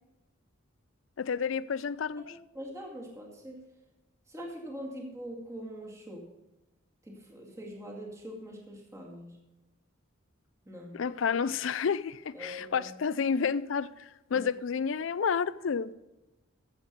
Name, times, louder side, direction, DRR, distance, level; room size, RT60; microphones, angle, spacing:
voice 1, 1.2-2.2 10.9-15.9, left 6 dB, 65° left, 0.4 m, -30 dB
voice 2, 2.2-3.6 4.3-6.3 7.0-9.4 10.7-11.0 12.3-12.9 14.3-14.5, equal, 15° right, 2.1 m, -43 dB
14.0 x 8.2 x 5.2 m
head